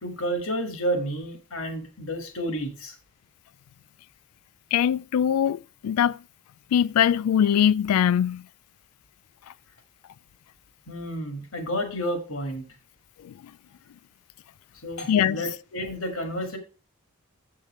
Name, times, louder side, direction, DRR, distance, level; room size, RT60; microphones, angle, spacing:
voice 1, 0.0-3.0 10.9-12.7 14.8-16.6, equal, 70° left, 1.8 m, -30 dB
voice 2, 4.7-6.2 6.7-8.4 13.2-13.3 15.1-15.4, left 9 dB, 85° left, 0.3 m, -22 dB
7.3 x 6.7 x 4.2 m
head